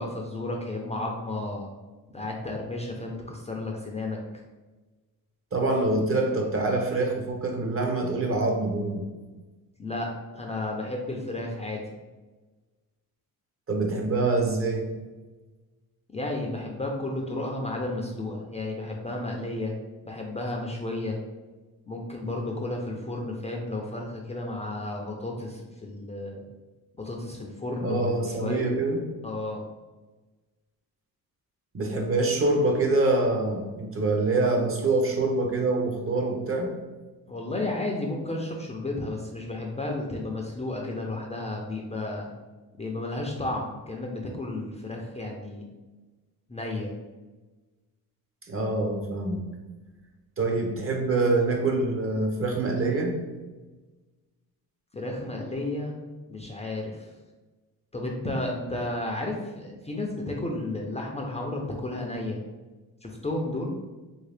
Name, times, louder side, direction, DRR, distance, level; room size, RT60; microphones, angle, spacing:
voice 1, 0.0-1.7 2.1-4.2 9.8-11.8 16.1-19.7 20.0-21.2 21.9-26.4 27.0-28.6 29.2-29.6 37.3-42.3 42.8-45.6 46.5-46.9 54.9-56.0 56.3-57.1 57.9-62.4 63.0-63.7, left 2 dB, 15° left, 0 dB, 0.5 m, -32 dB
voice 2, 5.5-9.1 13.7-14.9 27.8-29.0 31.7-36.7 48.5-49.4 50.4-53.2, right 2 dB, 35° right, 2 dB, 0.7 m, -25 dB
3.1 x 2.8 x 3.3 m, 1.2 s
cardioid pair, 85°, 38 cm